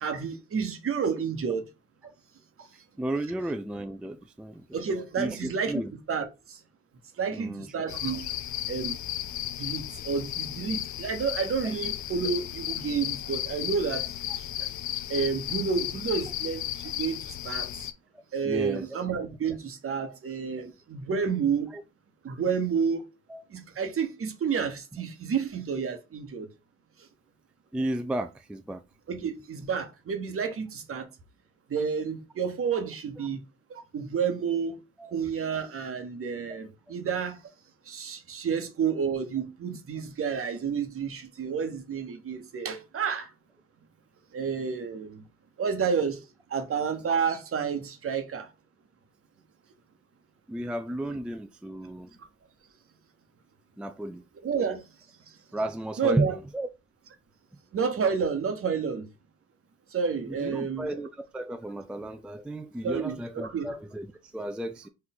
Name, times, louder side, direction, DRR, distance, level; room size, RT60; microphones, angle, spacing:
voice 1, 0.0-1.7 2.6-2.7 4.7-5.8 6.1-6.6 7.2-8.3 8.7-9.0 9.6-14.1 14.3-14.5 15.1-17.7 18.3-21.7 22.2-23.1 23.5-26.5 29.1-31.1 31.7-33.4 33.7-34.8 35.1-37.4 37.9-43.3 44.3-45.2 45.6-46.2 46.5-48.5 54.4-54.8 56.0-56.3 57.7-59.1 59.9-60.9 62.8-63.7, right 6 dB, 45° right, 1.1 m, -30 dB
voice 2, 3.0-4.8 5.2-5.9 7.3-7.7 18.4-19.0 21.7-21.8 23.3-23.4 27.7-28.8 35.0-35.1 50.5-52.1 53.8-54.2 55.5-56.7 60.3-64.9, right 1 dB, 5° right, 0.3 m, -33 dB
sound 1, 7.9-17.9, left 13 dB, 70° left, 0.5 m, -34 dB
4.3 x 2.5 x 4.0 m
cardioid pair, 90°, 30 cm